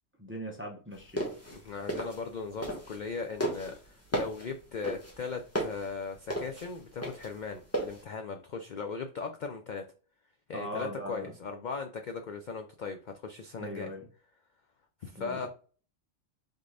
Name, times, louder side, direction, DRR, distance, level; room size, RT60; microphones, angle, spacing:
voice 1, 0.2-1.2 1.5-1.6 10.5-11.3 13.6-14.1 15.1-15.5, equal, 15° right, 0 dB, 0.5 m, -39 dB
sound 1, 1.0-3.1 3.4-8.0, right 1 dB, 10° left, 1.0 m, -34 dB
voice 2, 1.5-9.8 10.5-13.9 15.0-15.5, left 5 dB, 65° left, 5 dB, 0.4 m, -38 dB
3.7 x 3.6 x 3.2 m, 0.38 s
omnidirectional pair, 1.3 m